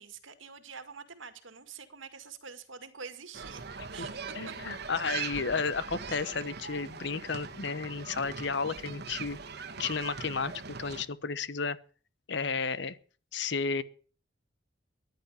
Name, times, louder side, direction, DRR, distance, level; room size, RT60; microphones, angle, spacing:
voice 1, 0.0-3.6 3.9-4.1 4.5-4.6 8.0-8.1, right 5 dB, 85° right, 2.0 m, -46 dB
sound 1, 3.3-11.0, right 5 dB, 55° right, 1.4 m, -41 dB
voice 2, 4.4-9.4 9.8-10.5 10.8-11.8 12.3-13.0 13.3-13.8, left 5 dB, 65° left, 1.0 m, -32 dB
14.0 x 10.5 x 7.2 m
head